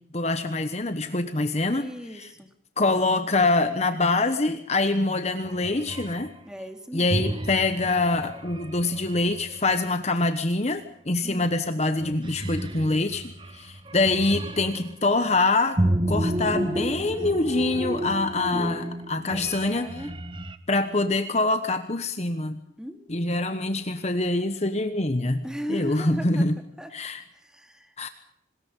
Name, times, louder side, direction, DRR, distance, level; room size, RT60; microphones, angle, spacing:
voice 1, 0.1-2.3 2.8-6.3 6.9-15.8 16.1-19.9 20.7-22.6 23.1-25.4 25.7-26.5 26.9-27.2 28.0-28.1, left 2 dB, 35° left, 9 dB, 1.2 m, -25 dB
voice 2, 1.7-2.5 6.4-7.1 11.2-11.5 19.3-20.1 22.8-23.3 25.4-26.4 26.8-26.9 27.3-27.9, equal, 5° right, 6 dB, 2.5 m, -37 dB
sound 1, 5.4-6.3 7.1-9.7 11.4-11.7 12.0-15.0 15.8-20.6, right 1 dB, 25° right, 1.2 m, -31 dB
26.5 x 20.0 x 5.5 m, 0.71 s
head